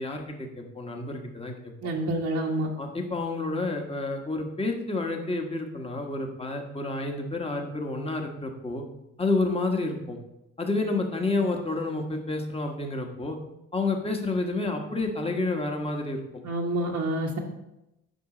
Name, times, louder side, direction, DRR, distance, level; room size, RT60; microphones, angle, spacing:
voice 1, 0.0-1.5 2.8-8.8 9.2-10.2 10.6-13.4 13.7-16.2, left 2 dB, 20° left, 3 dB, 1.3 m, -29 dB
voice 2, 1.8-2.7 16.4-17.4, right 1 dB, 65° right, -2 dB, 1.2 m, -28 dB
9.4 x 5.4 x 3.9 m, 0.90 s
cardioid pair, 90°, 30 cm